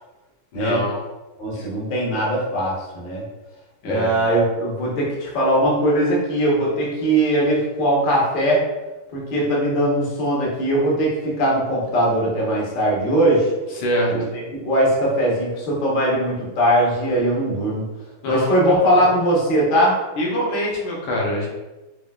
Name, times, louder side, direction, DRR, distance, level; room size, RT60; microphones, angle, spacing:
voice 1, 0.5-1.0 1.5-1.7 3.8-4.2 13.8-14.1 18.2-19.0 20.2-21.5, equal, 75° left, -2 dB, 1.4 m, -25 dB
voice 2, 1.4-3.2 3.8-8.6 9.1-13.5 14.1-17.8 18.2-19.9, right 1 dB, 60° left, -5 dB, 0.5 m, -20 dB
4.8 x 2.3 x 2.3 m, 1.1 s
omnidirectional pair, 2.4 m